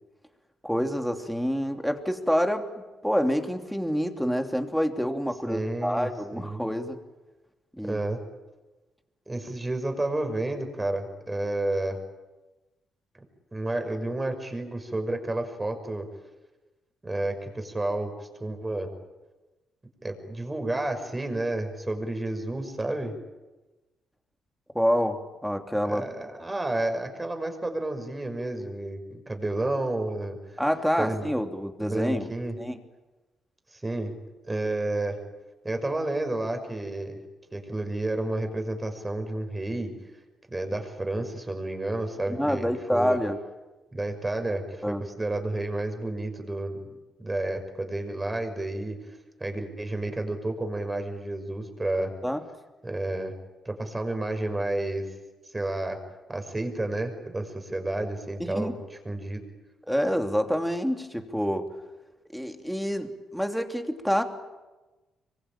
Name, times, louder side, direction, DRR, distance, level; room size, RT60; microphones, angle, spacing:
voice 1, 0.6-2.7 3.0-7.0 7.8-8.0 24.7-26.0 30.6-32.3 32.6-32.8 42.4-43.4 44.8-45.0 52.2-52.4 58.4-58.7 59.9-61.7 62.3-64.2, equal, ahead, 5 dB, 3.0 m, -27 dB
voice 2, 5.5-6.6 7.8-8.2 9.3-12.0 13.5-16.1 17.0-18.9 20.0-23.1 25.8-30.6 31.0-31.3 31.8-32.6 33.7-34.2 34.4-35.2 35.6-37.2 37.5-39.9 40.5-43.2 43.9-46.8 47.2-52.1 52.8-53.3 53.6-55.1 55.5-56.0 56.3-59.4, right 2 dB, 15° right, 6 dB, 5.9 m, -31 dB
25.5 x 24.0 x 9.0 m, 1.1 s
cardioid pair, 90°, 0 cm